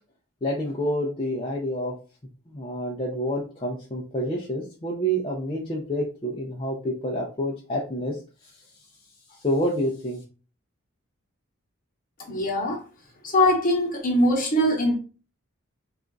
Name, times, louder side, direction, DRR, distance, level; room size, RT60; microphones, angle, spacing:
voice 1, 0.4-1.9 2.5-8.2 9.4-10.2, equal, 25° left, 0.5 m, -28 dB
voice 2, 12.3-12.8 13.2-15.0, left 1 dB, 40° left, 1.0 m, -22 dB
3.4 x 2.5 x 3.8 m
head